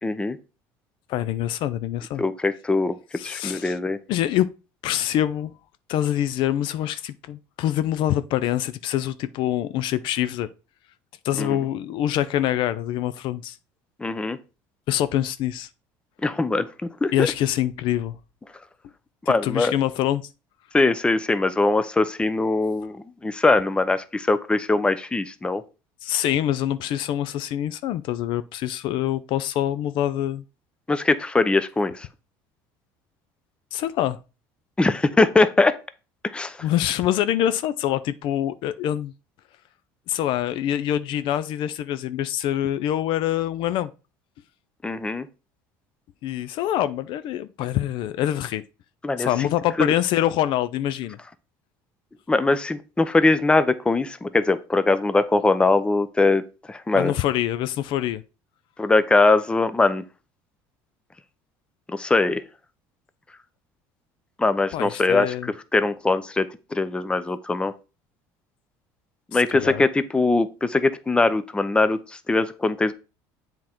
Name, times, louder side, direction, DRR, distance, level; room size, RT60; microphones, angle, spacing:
voice 1, 0.0-0.4 2.2-4.0 11.4-11.6 14.0-14.4 16.2-17.3 19.3-19.7 20.7-25.6 30.9-32.1 34.8-35.7 36.3-36.6 44.8-45.3 49.0-49.5 49.8-49.9 52.3-57.1 58.8-60.0 61.9-62.4 64.4-65.3 65.7-67.7 69.3-72.9, left 3 dB, 10° left, 0.6 m, -21 dB
voice 2, 1.1-2.2 3.2-3.8 4.1-4.5 4.8-5.5 5.9-10.5 11.2-13.6 14.9-15.7 17.1-18.2 19.3-20.2 26.0-30.4 33.7-34.2 36.6-39.1 40.1-43.9 46.2-48.6 49.2-51.2 56.9-58.2 64.7-65.5 69.3-69.8, left 12 dB, 60° left, 0.5 m, -25 dB
7.5 x 3.7 x 4.4 m
supercardioid pair, 105°, 9 cm